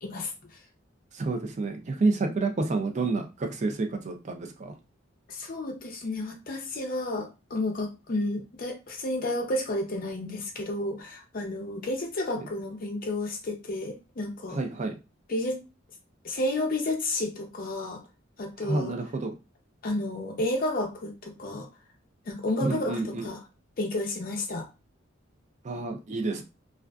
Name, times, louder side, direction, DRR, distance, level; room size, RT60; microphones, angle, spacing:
voice 1, 0.0-0.3 5.3-14.6 15.3-15.6 16.2-18.0 18.4-18.9 19.8-21.7 22.3-23.4 23.8-24.7, left 1 dB, 45° left, 3 dB, 0.6 m, -31 dB
voice 2, 1.1-4.8 14.5-14.9 18.6-19.3 22.6-23.2 25.6-26.4, right 3 dB, 35° right, 4 dB, 0.4 m, -29 dB
2.4 x 2.4 x 2.2 m, 0.28 s
head